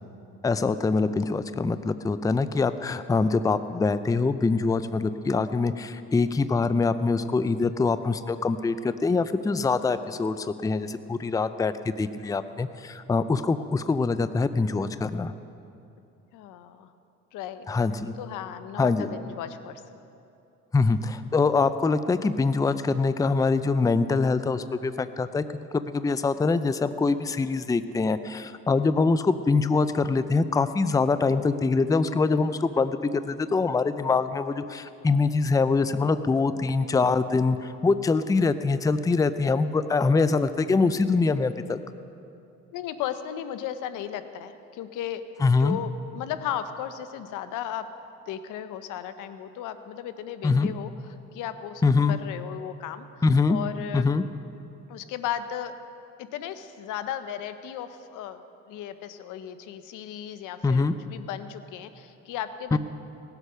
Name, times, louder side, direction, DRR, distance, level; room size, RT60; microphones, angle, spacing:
voice 1, 0.4-15.3 17.7-18.1 18.8-19.1 20.7-25.4 25.7-41.8 45.4-45.8 50.4-50.7 51.8-52.2 53.2-53.6 53.9-54.2 60.6-61.0 62.7-62.8, left 4 dB, 10° left, 12 dB, 0.4 m, -24 dB
voice 2, 16.3-16.9 17.3-17.7 18.2-20.0 36.5-36.8 42.7-47.8 48.3-50.9 51.3-53.2 53.5-54.1 54.9-55.7 56.2-62.8, left 10 dB, 85° left, 11 dB, 0.8 m, -35 dB
17.5 x 8.1 x 5.6 m, 2.7 s
cardioid pair, 85°, 30 cm